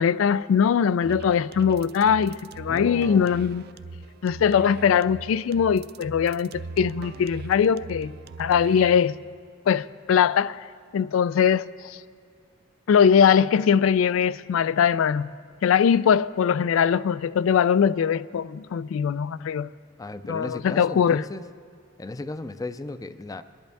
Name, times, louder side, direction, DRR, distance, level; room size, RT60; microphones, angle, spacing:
voice 1, 0.0-3.6 4.2-6.5 6.8-8.1 8.4-9.2 9.7-10.6 10.9-12.0 12.9-15.3 15.6-19.7 20.3-21.2, left 7 dB, 85° left, 0.3 m, -21 dB
sound 1, 1.0-9.0, right 4 dB, 50° right, 0.4 m, -40 dB
voice 2, 2.7-3.4 20.0-21.4 22.0-23.4, left 2 dB, 20° left, 0.4 m, -35 dB
22.5 x 11.0 x 3.5 m
head